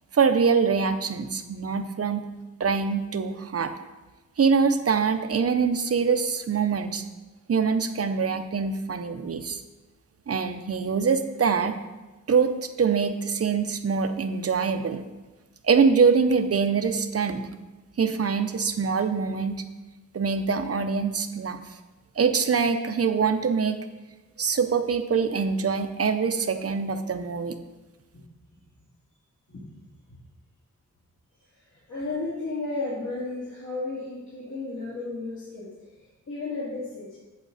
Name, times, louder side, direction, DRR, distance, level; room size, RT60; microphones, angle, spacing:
voice 1, 0.1-2.3 2.6-3.7 4.4-7.0 7.5-9.6 10.3-11.7 12.3-15.0 15.6-17.5 18.0-19.6 20.1-21.7 22.2-23.8 24.4-27.6, right 5 dB, 50° right, 8 dB, 0.6 m, -24 dB
voice 2, 31.5-37.2, left 3 dB, 70° left, -8 dB, 2.5 m, -34 dB
8.4 x 7.6 x 4.0 m, 1.2 s
wide cardioid pair, 140°, 30 cm